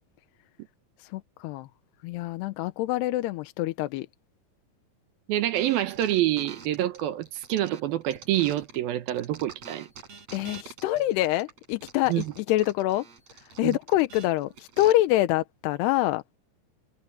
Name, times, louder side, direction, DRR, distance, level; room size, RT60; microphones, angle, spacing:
voice 1, 1.0-1.7 2.0-4.1 10.3-13.1 13.6-16.2, left 16 dB, 90° left, 2.8 m, -26 dB
voice 2, 5.3-9.9 12.1-12.2 13.6-13.8, right 13 dB, 70° right, 2.7 m, -27 dB
sound 1, 5.5-8.8 9.1-14.9, right 5 dB, 40° right, 4.7 m, -46 dB
omnidirectional pair, 4.8 m